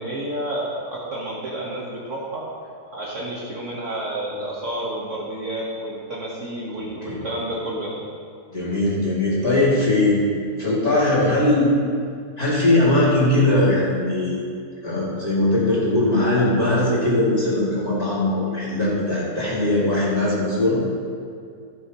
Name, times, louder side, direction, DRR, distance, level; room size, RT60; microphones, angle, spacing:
voice 1, 0.0-2.5 2.9-8.0, right 1 dB, 50° right, -5 dB, 1.7 m, -30 dB
voice 2, 8.5-10.2 10.6-11.7 12.4-14.4 14.8-20.8, left 2 dB, 20° left, -9 dB, 2.9 m, -20 dB
15.5 x 7.1 x 3.1 m, 2.3 s
omnidirectional pair, 1.8 m